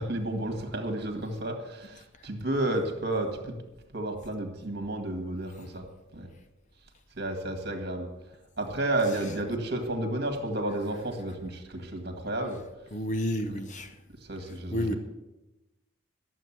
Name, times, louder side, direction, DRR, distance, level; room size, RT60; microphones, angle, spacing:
voice 1, 0.0-3.6 3.9-5.9 6.1-6.3 7.2-8.1 8.6-12.6 14.2-14.9, right 1 dB, 50° right, 4 dB, 1.9 m, -31 dB
voice 2, 12.9-13.9 14.7-14.9, equal, 35° left, 9 dB, 0.8 m, -30 dB
11.5 x 7.7 x 7.3 m, 1.0 s
head